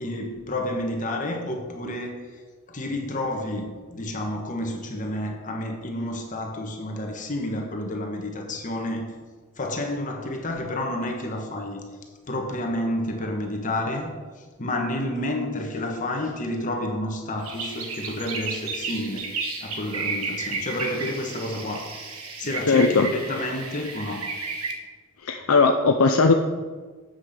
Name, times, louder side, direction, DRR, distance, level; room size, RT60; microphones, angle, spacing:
voice 1, 0.0-2.3 2.7-9.2 9.6-11.9 12.3-19.3 19.6-22.0 22.4-24.3, left 1 dB, 35° left, 2 dB, 1.4 m, -30 dB
sound 1, 17.4-24.7, right 4 dB, 90° right, 1.3 m, -33 dB
voice 2, 22.7-23.1 25.3-26.3, left 4 dB, 75° left, 4 dB, 0.6 m, -18 dB
7.8 x 6.4 x 6.6 m, 1.4 s
head